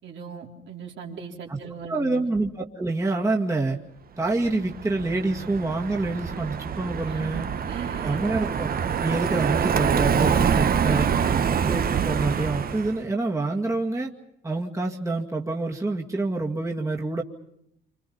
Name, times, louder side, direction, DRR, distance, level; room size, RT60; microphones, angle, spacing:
voice 1, 0.0-2.3 7.1-8.2 10.9-11.4, right 7 dB, 70° right, 0 dB, 3.9 m, -39 dB
voice 2, 1.9-3.8 4.2-7.5 8.0-8.7 9.0-11.1 11.7-14.1 14.4-17.2, right 2 dB, 15° right, -1 dB, 2.3 m, -27 dB
Car passing by, 4.4-13.0, right 7 dB, 50° right, 1.1 m, -25 dB
28.5 x 26.5 x 5.6 m, 0.74 s
cardioid pair, 90°, 20 cm